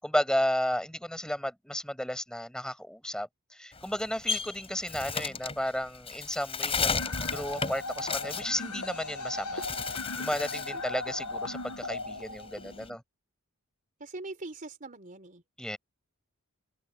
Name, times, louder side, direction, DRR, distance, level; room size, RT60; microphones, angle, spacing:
voice 1, 0.0-7.0 7.3-9.6 10.2-13.0 15.6-15.8, equal, 5° left, 6.9 m, -33 dB
Bird, 3.7-9.2 9.5-10.8 11.2-12.9, left 5 dB, 25° left, 6.8 m, -34 dB
The Arrival, 7.0-12.9, left 3 dB, 75° left, 1.3 m, -38 dB
voice 2, 14.0-15.4, right 2 dB, 40° right, 4.1 m, -42 dB
head